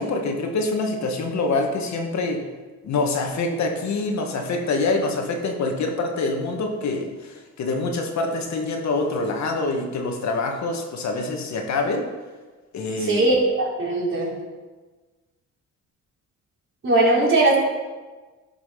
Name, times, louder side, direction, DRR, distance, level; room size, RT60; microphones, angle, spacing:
voice 1, 0.0-2.4 2.8-12.1 12.7-13.3, left 3 dB, 65° left, 2 dB, 1.8 m, -25 dB
voice 2, 13.0-14.3 16.8-17.6, right 2 dB, 40° right, -4 dB, 4.0 m, -19 dB
11.5 x 6.1 x 5.9 m, 1.3 s
cardioid pair, 90°, 30 cm